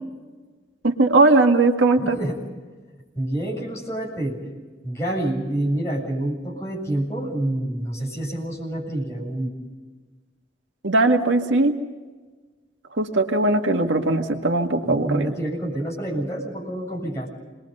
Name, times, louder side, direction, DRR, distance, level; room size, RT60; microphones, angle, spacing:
voice 1, 0.8-2.2 10.8-11.8 13.0-15.3, right 2 dB, 85° right, 4 dB, 1.8 m, -19 dB
voice 2, 2.0-2.4 3.2-4.4 4.8-9.5 14.8-17.3, right 1 dB, 15° left, -3 dB, 7.3 m, -27 dB
28.0 x 21.5 x 5.4 m, 1.3 s
head